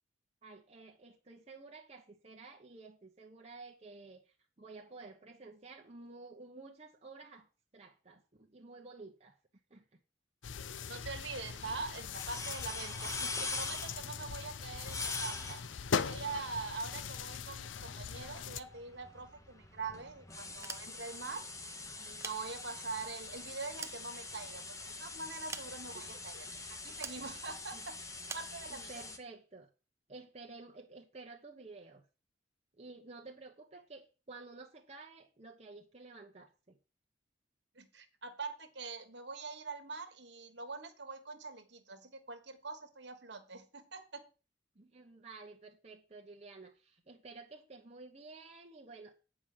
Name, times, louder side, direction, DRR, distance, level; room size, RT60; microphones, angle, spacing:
voice 1, 0.4-7.5 7.7-9.4 9.7-10.0 25.9-26.2 27.7-27.9 28.7-29.7 30.1-32.0 32.8-36.8 44.7-49.1, right 3 dB, 35° right, 1.0 m, -52 dB
sound 1, 10.4-18.6, left 6 dB, 85° left, 0.6 m, -40 dB
voice 2, 10.8-15.6 16.0-21.4 22.0-29.0 37.7-44.2, right 4 dB, 65° right, 1.5 m, -44 dB
sound 2, 11.1-29.2, left 3 dB, 15° left, 1.0 m, -45 dB
sound 3, 20.6-21.3 22.0-23.0 23.5-24.7 25.5-26.1 27.0-27.3 28.3-28.6, right 5 dB, 15° right, 0.5 m, -46 dB
9.2 x 5.0 x 7.2 m
head